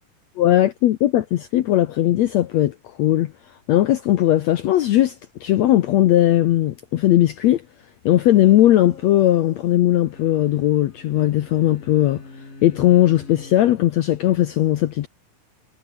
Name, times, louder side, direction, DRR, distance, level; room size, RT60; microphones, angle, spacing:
voice 1, 0.4-3.3 3.7-7.6 8.0-12.2 12.6-15.1, left 13 dB, 75° left, 1.6 m, -18 dB
sound 1, 8.3-9.7 10.0-13.7, left 3 dB, 20° left, 3.9 m, -44 dB
omnidirectional pair, 4.2 m